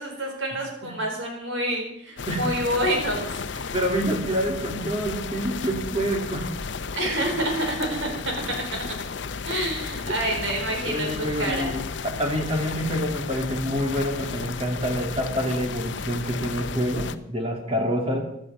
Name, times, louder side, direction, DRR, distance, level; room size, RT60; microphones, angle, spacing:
voice 1, 0.0-3.6 6.9-8.3 9.4-11.7, right 1 dB, 80° right, 1 dB, 4.8 m, -28 dB
sound 1, 2.2-17.2, left 5 dB, 65° left, 0.6 m, -33 dB
voice 2, 3.7-6.5 7.2-7.3 10.0-10.5 10.8-18.3, equal, 30° right, 2 dB, 2.5 m, -27 dB
15.5 x 12.0 x 5.6 m, 0.77 s
head